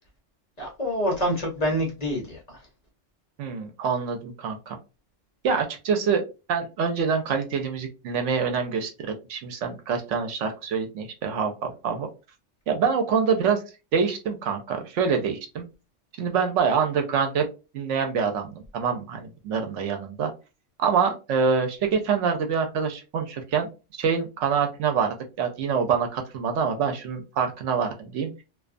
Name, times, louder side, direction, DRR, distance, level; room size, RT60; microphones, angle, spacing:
voice 1, 0.6-2.6, equal, 40° left, -1 dB, 0.7 m, -27 dB
voice 2, 3.4-4.8 5.4-6.2 6.5-12.1 12.7-13.6 13.9-15.7 16.2-17.5 17.7-20.3 20.8-23.7 23.9-28.4, right 6 dB, 75° right, 5 dB, 0.9 m, -25 dB
2.3 x 2.3 x 2.4 m, 0.29 s
omnidirectional pair, 1.3 m